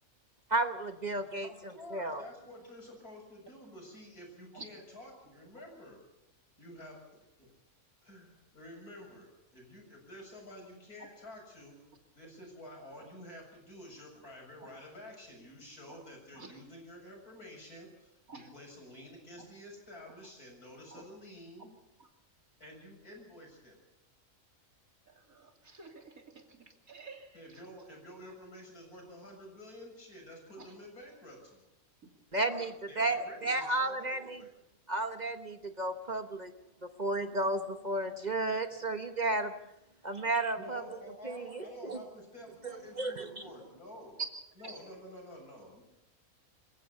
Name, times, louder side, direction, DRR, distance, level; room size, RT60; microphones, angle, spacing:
voice 1, 0.5-1.5 1.9-2.2 32.3-32.7 33.0-34.4 34.9-36.5 36.8-39.5 40.0-40.8 41.2-42.1 43.0-43.4, right 2 dB, 30° right, 8 dB, 1.1 m, -33 dB
voice 2, 1.1-6.0 6.6-7.5 8.0-11.8 12.1-21.7 22.6-23.8 27.3-31.6 32.4-32.6 32.9-34.5 40.6-44.2 44.6-45.8, left 1 dB, 90° left, 1 dB, 7.6 m, -50 dB
voice 3, 25.3-26.2 26.9-27.3 44.6-44.8, right 3 dB, 70° right, 4 dB, 3.2 m, -48 dB
27.0 x 15.5 x 6.9 m, 0.87 s
omnidirectional pair, 1.5 m